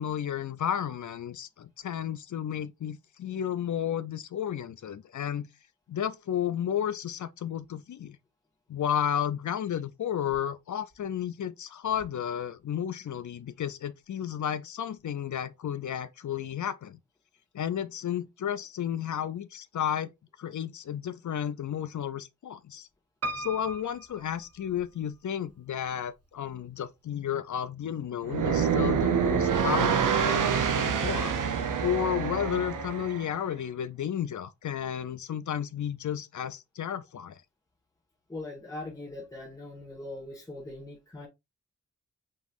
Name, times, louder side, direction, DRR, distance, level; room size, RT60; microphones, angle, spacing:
voice 1, 0.0-5.5 5.9-8.2 8.7-17.0 17.5-20.1 20.4-22.9 23.4-31.3 31.8-37.4, left 9 dB, 70° left, 0.6 m, -32 dB
Piano, 23.2-25.2 25.8-26.5 26.9-27.0 27.2-27.3, right 1 dB, 55° right, 0.7 m, -38 dB
sound 1, 28.2-33.3, right 7 dB, 90° right, 0.8 m, -26 dB
voice 2, 38.3-41.3, left 2 dB, 10° left, 1.5 m, -41 dB
5.4 x 3.1 x 2.5 m
wide cardioid pair, 100°, 31 cm